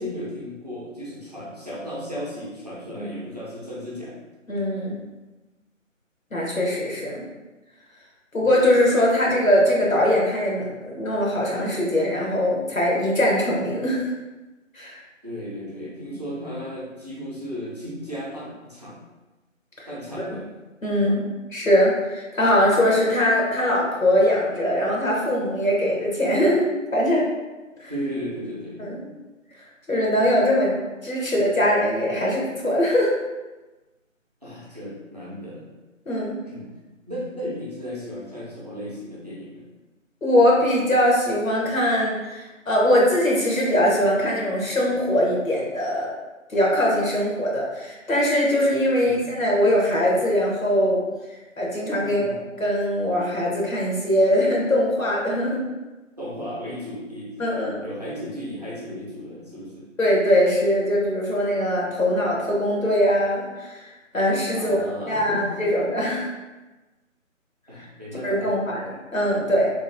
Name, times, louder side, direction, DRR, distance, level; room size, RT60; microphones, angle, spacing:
voice 1, 0.0-4.2 8.4-8.5 15.2-19.0 19.9-20.5 27.9-28.9 34.4-35.7 36.4-36.7 37.1-39.6 49.0-49.3 52.0-52.4 56.2-57.5 57.8-59.9 64.5-65.9 67.7-68.5, equal, 30° right, -7 dB, 0.6 m, -35 dB
voice 2, 4.5-5.0 6.3-7.2 8.3-14.0 14.7-15.0 20.8-21.2 21.5-27.3 27.8-27.9 28.8-29.0 29.9-30.8 31.0-33.1 36.1-36.4 40.2-46.1 46.5-51.0 51.6-55.6 57.4-57.8 60.0-63.9 64.1-66.3 68.2-69.7, equal, 90° left, -3 dB, 1.1 m, -21 dB
3.0 x 2.5 x 2.6 m, 1.1 s
figure-of-eight pair, 155°, 40 cm